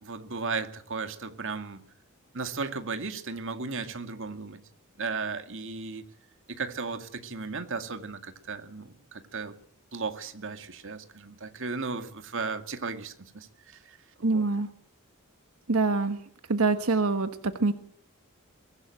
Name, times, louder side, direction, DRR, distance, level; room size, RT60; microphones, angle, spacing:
voice 1, 0.0-1.8 2.3-4.6 5.0-6.0 6.5-9.5 9.9-14.5, right 4 dB, 60° right, 8 dB, 2.1 m, -35 dB
voice 2, 14.2-14.7 15.7-16.2 16.5-17.7, right 3 dB, 85° right, 9 dB, 1.2 m, -25 dB
23.0 x 16.0 x 7.8 m, 0.65 s
head